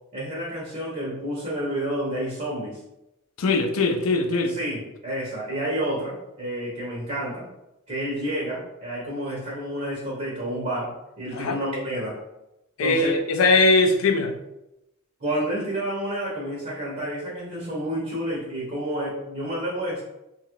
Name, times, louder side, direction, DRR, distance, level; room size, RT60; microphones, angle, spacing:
voice 1, 0.1-2.8 4.3-7.5 7.9-12.2 12.8-13.1 15.2-20.0, right 1 dB, 35° right, 0.7 m, -30 dB
voice 2, 3.4-4.5 11.3-11.6 12.8-14.4, left 3 dB, 70° left, 0.4 m, -20 dB
2.8 x 2.3 x 3.0 m
head